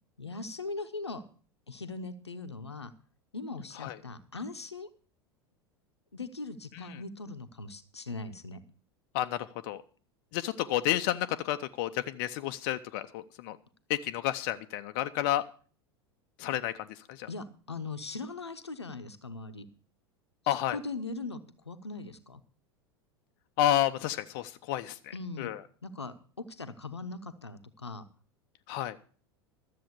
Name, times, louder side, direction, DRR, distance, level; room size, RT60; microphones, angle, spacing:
voice 1, 0.2-1.2 1.7-2.9 3.3-4.9 6.1-8.6 17.3-19.7 20.7-21.4 21.7-22.4 25.1-25.5 25.8-28.0, left 3 dB, 85° left, 10 dB, 0.9 m, -40 dB
voice 2, 9.1-9.8 10.3-13.6 13.9-15.4 16.4-17.3 20.5-20.8 23.6-25.6 28.7-29.0, left 13 dB, 50° left, 9 dB, 0.7 m, -31 dB
13.0 x 7.7 x 6.7 m, 0.42 s
figure-of-eight pair, 80°, 14 cm